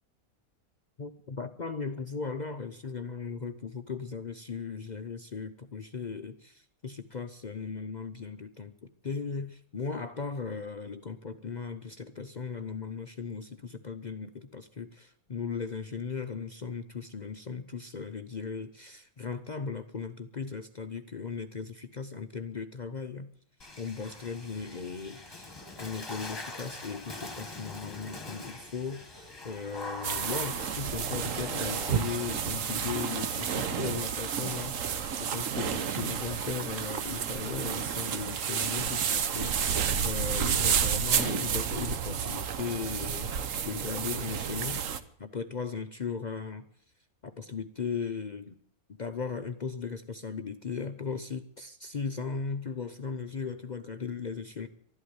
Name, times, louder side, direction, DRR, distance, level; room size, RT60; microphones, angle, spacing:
voice 1, 1.0-23.3 23.8-43.4 43.6-44.8 45.2-46.7 47.2-48.6 48.9-54.7, left 5 dB, 50° left, 8 dB, 0.5 m, -37 dB
Water / Splash splatter, 23.6-33.6, left 2 dB, 15° left, 1.4 m, -43 dB
Singing / Musical instrument, 29.5-40.7, right 2 dB, 80° right, 3.7 m, -51 dB
sound 1, 30.0-45.0, right 8 dB, 60° right, 1.2 m, -31 dB
12.5 x 12.0 x 9.4 m, 0.67 s
omnidirectional pair, 1.6 m